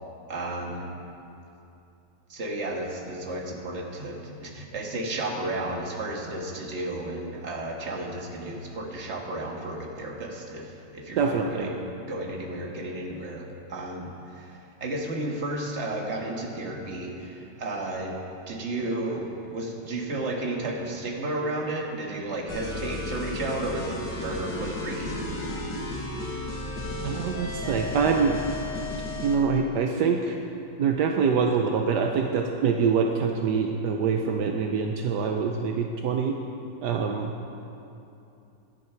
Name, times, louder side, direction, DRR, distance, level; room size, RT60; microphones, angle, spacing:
voice 1, 0.3-0.9 2.3-18.2 18.5-25.6, right 2 dB, 40° right, -1 dB, 1.8 m, -33 dB
voice 2, 11.2-11.7 27.0-28.4 29.2-30.4 30.8-36.4 36.8-37.3, right 5 dB, 75° right, 3 dB, 1.3 m, -25 dB
sound 1, 22.5-29.4, left 2 dB, 85° left, 2.4 m, -33 dB
16.5 x 11.5 x 4.6 m, 2.8 s
omnidirectional pair, 1.9 m